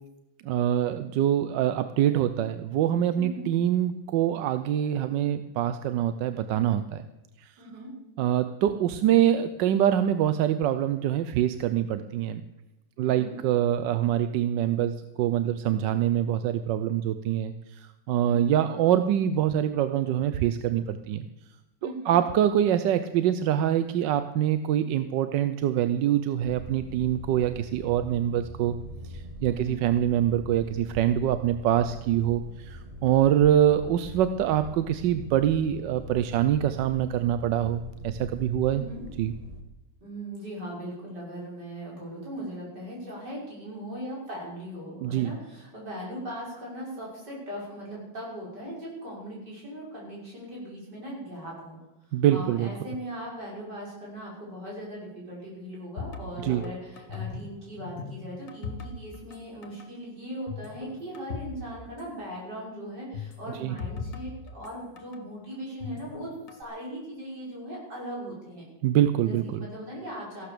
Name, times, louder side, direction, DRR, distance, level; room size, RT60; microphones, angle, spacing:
voice 1, 0.4-7.0 8.2-12.4 13.0-21.3 21.8-28.8 29.4-38.8 39.2-39.3 45.0-45.3 52.1-52.7 56.4-56.6 63.5-63.7 68.8-69.7, right 11 dB, 70° right, 11 dB, 1.2 m, -25 dB
voice 2, 3.1-3.5 7.6-7.9 13.0-13.4 18.3-18.6 21.8-22.2 29.5-29.8 38.7-39.0 40.0-51.8 52.3-68.6 69.2-70.5, equal, 55° right, -4 dB, 6.7 m, -39 dB
sound 1, 26.4-39.6, equal, 20° right, 1.4 m, -43 dB
sound 2, 56.0-57.5 57.8-59.4 59.6-59.9 60.5-61.6 61.8-61.9 63.1-65.2 65.8-66.6, left 5 dB, 45° left, 1.7 m, -38 dB
15.0 x 12.0 x 6.8 m, 1.0 s
omnidirectional pair, 2.1 m